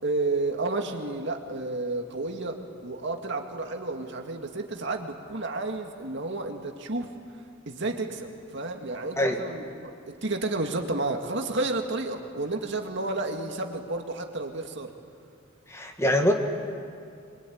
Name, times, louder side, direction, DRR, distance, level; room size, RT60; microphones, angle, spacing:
voice 1, 0.0-7.1 7.7-14.9, right 2 dB, 60° right, 3 dB, 2.3 m, -31 dB
voice 2, 15.7-16.3, equal, 15° left, 3 dB, 2.0 m, -23 dB
26.0 x 23.0 x 9.6 m, 2.4 s
head